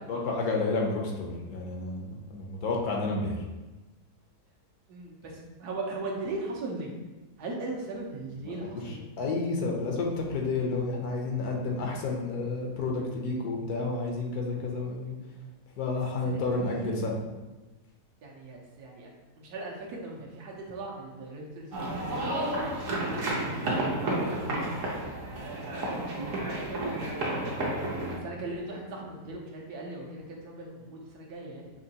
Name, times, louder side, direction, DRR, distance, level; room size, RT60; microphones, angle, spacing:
voice 1, 0.1-3.4 8.6-8.7 9.2-15.2 15.8-17.2, left 3 dB, 75° left, 0 dB, 1.3 m, -30 dB
voice 2, 4.9-6.9 7.4-9.0 16.2-16.9 18.2-22.5 23.0-24.8 25.0-26.8 27.5-31.7, right 2 dB, 75° right, -2 dB, 1.4 m, -39 dB
sound 1, 21.7-28.2, right 1 dB, 60° right, 1.1 m, -31 dB
5.5 x 3.0 x 2.8 m, 1.1 s
omnidirectional pair, 1.7 m